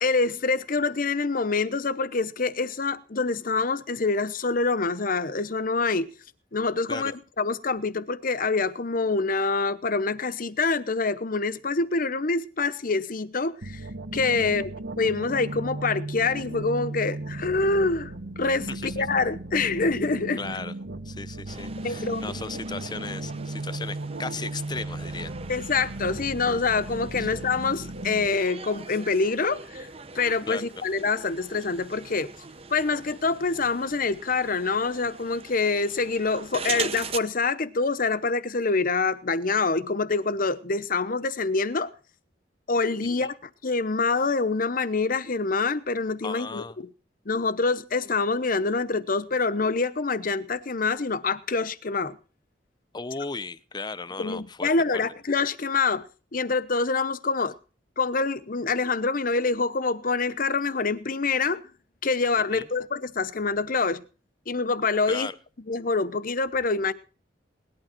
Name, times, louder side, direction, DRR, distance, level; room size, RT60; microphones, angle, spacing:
voice 1, 0.0-6.1 6.5-13.8 14.1-14.7 15.0-20.4 21.8-22.2 25.5-29.9 30.1-32.3 32.7-41.9 42.7-46.9 47.3-52.2 54.2-56.0 56.3-57.5 58.0-61.6 62.0-64.0 64.5-65.3 65.7-66.9, left 4 dB, 50° left, 0.9 m, -26 dB
sound 1, 13.6-28.3, right 2 dB, 70° right, 1.5 m, -36 dB
voice 2, 20.4-20.7 21.0-25.3 27.2-27.3 30.5-30.6 43.2-43.3 46.2-46.8 52.9-54.7 62.5-62.7 65.1-65.4, left 4 dB, 25° left, 0.7 m, -36 dB
sound 2, 21.5-37.2, right 5 dB, 35° right, 0.9 m, -41 dB
18.5 x 11.5 x 4.4 m
head